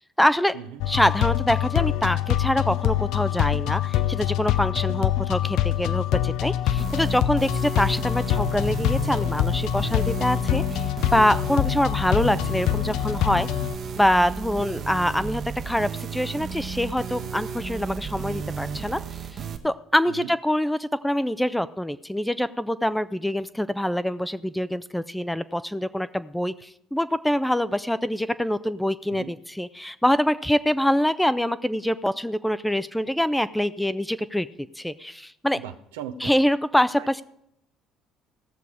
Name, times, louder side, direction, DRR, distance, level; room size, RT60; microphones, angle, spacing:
voice 1, 0.2-0.6 0.9-13.5 14.0-19.0 19.6-34.5 34.8-35.6 36.2-37.2, equal, 5° left, 15 dB, 0.5 m, -25 dB
sound 1, 0.8-13.8, left 12 dB, 65° left, 0.5 m, -25 dB
sound 2, 6.8-19.6, right 6 dB, 50° right, 1.1 m, -34 dB
voice 2, 35.6-36.3 37.0-37.1, right 9 dB, 80° right, 9 dB, 0.7 m, -38 dB
16.5 x 6.8 x 4.9 m, 0.77 s
hypercardioid pair, 60°, 0 cm